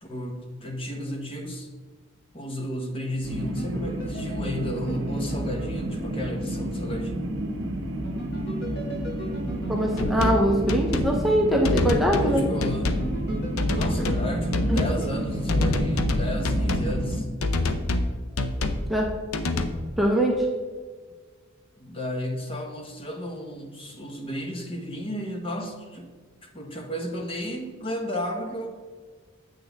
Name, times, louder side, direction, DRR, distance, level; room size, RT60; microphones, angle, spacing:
voice 1, 0.0-1.7 2.3-7.2 12.2-12.9 13.7-17.3 21.8-26.1 26.4-28.7, equal, 25° left, 3 dB, 0.9 m, -33 dB
sound 1, 3.2-17.2, right 1 dB, 60° right, 0.8 m, -31 dB
sound 2, 3.4-6.5 8.0-11.2 12.7-16.1, equal, 50° left, 1.6 m, -37 dB
voice 2, 9.7-12.4 14.0-14.1 14.7-14.8 18.9-19.1 20.0-20.5, equal, ahead, -1 dB, 0.7 m, -22 dB
sound 3, 10.0-10.4 10.7-11.2 11.7-12.3 12.6-13.1 13.6-14.3 14.5-15.0 15.5-16.9 17.4-18.1 18.4-18.8 19.3-19.7, left 2 dB, 85° left, 0.6 m, -26 dB
8.1 x 6.1 x 3.4 m, 1.5 s
head